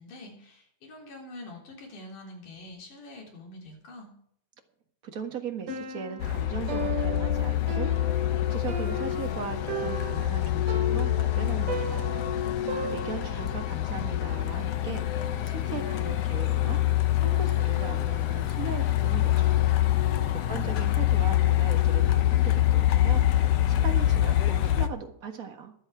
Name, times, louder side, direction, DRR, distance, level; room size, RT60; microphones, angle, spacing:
voice 1, 0.0-4.1 20.2-20.8, left 2 dB, 90° left, -1 dB, 5.1 m, -45 dB
voice 2, 5.0-12.2 12.9-15.1 15.4-19.6 20.5-23.2 23.7-25.7, right 6 dB, 40° right, 5 dB, 1.3 m, -38 dB
Piano, 5.7-13.5, right 3 dB, 80° right, 3.7 m, -37 dB
Truck, 6.2-24.9, left 13 dB, 65° left, 1.8 m, -25 dB
23.0 x 8.2 x 4.9 m, 0.68 s
omnidirectional pair, 3.6 m